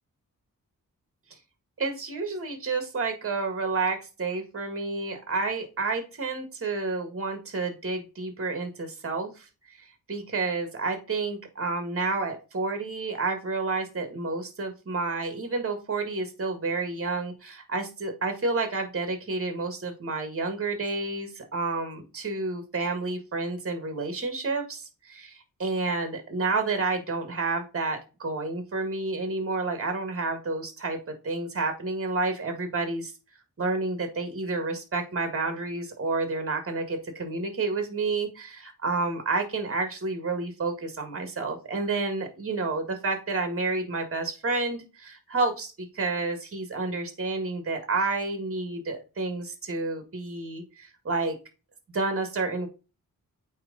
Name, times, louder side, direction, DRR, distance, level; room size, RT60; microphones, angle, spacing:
voice 1, 1.8-33.1 33.6-51.3 51.9-52.7, right 3 dB, 40° right, 7 dB, 1.6 m, -30 dB
8.7 x 3.1 x 3.8 m, 0.31 s
wide cardioid pair, 95°, 34 cm